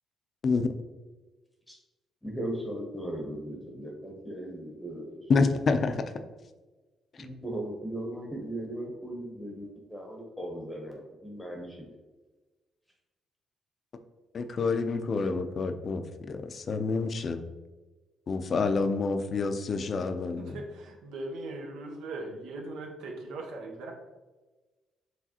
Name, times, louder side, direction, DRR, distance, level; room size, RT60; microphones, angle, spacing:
voice 1, 2.2-5.3 7.2-12.0, right 1 dB, 10° left, 0 dB, 0.7 m, -38 dB
voice 2, 5.3-6.1 14.3-17.4 18.3-20.6, left 4 dB, 50° left, 8 dB, 0.4 m, -28 dB
voice 3, 20.4-23.9, right 2 dB, 90° right, 2 dB, 0.7 m, -39 dB
4.9 x 3.1 x 2.8 m, 1.2 s
cardioid pair, 90°, 0 cm